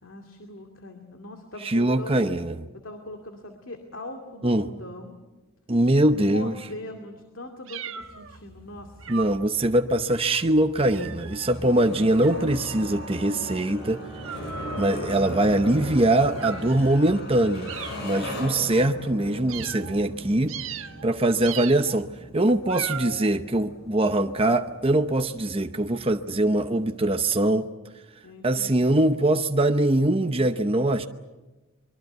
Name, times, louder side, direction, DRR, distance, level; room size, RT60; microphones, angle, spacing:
voice 1, 0.0-2.3 2.7-5.2 6.2-9.2 14.3-14.6 28.2-29.1, left 2 dB, 70° left, 2.4 m, -41 dB
voice 2, 1.6-2.5 4.4-4.7 5.7-6.6 9.1-14.0 14.8-17.7 18.0-20.6 21.0-27.7 28.4-31.1, right 1 dB, 25° right, 0.8 m, -22 dB
sound 1, 7.7-8.4 9.0-9.5 10.1-10.4 10.8-11.6 12.2-15.6 16.3-16.8 17.7-18.1 18.7-18.9 19.5-20.0 20.5-21.1 21.4-22.0 22.6-23.3, right 8 dB, 70° right, 1.2 m, -38 dB
sound 2, 8.0-27.3, equal, 50° left, 7.3 m, -39 dB
24.0 x 23.0 x 8.0 m
head